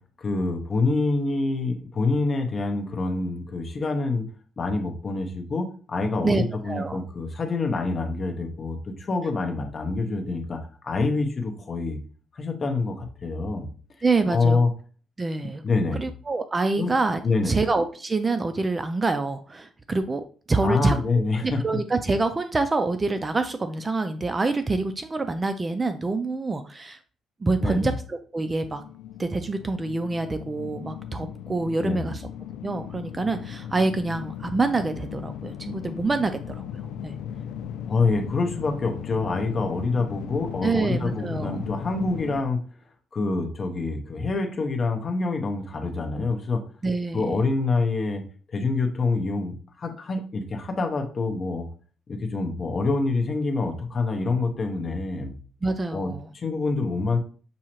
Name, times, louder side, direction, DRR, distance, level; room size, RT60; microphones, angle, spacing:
voice 1, 0.2-4.3 4.6-12.0 12.3-13.7 14.3-14.7 15.6-16.0 16.8-16.9 17.2-17.6 20.6-21.6 27.6-27.9 31.8-32.2 37.9-42.6 43.1-46.6 47.1-48.2 48.5-51.7 52.1-55.3 55.9-57.2, left 3 dB, 35° left, 4 dB, 0.8 m, -26 dB
voice 2, 6.2-7.0 14.0-14.6 15.2-15.6 15.9-27.0 27.4-28.8 29.2-32.2 32.6-36.6 37.0-37.1 40.6-41.6 46.8-47.4 55.6-56.3, right 3 dB, 20° right, 9 dB, 0.3 m, -26 dB
sound 1, 28.4-42.4, left 9 dB, 90° left, 0.3 m, -37 dB
6.1 x 2.7 x 2.9 m, 0.40 s
cardioid pair, 145°, 0 cm